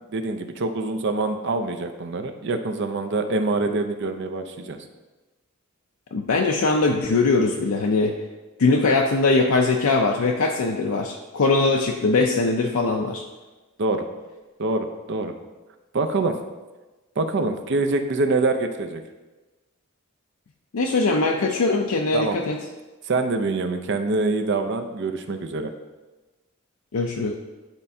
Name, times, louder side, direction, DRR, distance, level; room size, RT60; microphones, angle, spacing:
voice 1, 0.1-4.8 13.8-14.0 14.6-15.3 15.9-16.4 17.2-19.0 22.1-22.4 23.1-25.7, right 3 dB, 55° right, 7 dB, 0.6 m, -25 dB
voice 2, 6.1-8.1 8.6-13.2 20.7-22.6 26.9-27.3, left 3 dB, 75° left, 1 dB, 0.5 m, -21 dB
10.5 x 4.3 x 2.7 m, 1.2 s
head